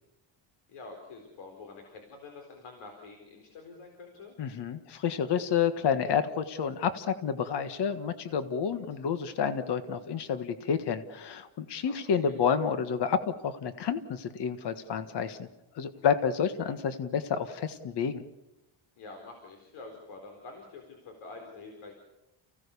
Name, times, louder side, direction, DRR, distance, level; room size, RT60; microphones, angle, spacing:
voice 1, 0.7-4.3 11.8-12.4 15.9-16.1 19.0-21.9, left 3 dB, 80° left, 3 dB, 4.3 m, -47 dB
voice 2, 4.4-13.2 13.4-15.5 15.7-18.2, left 7 dB, 55° left, 10 dB, 1.6 m, -29 dB
30.0 x 17.0 x 7.0 m, 0.94 s
cardioid pair, 155°, 49 cm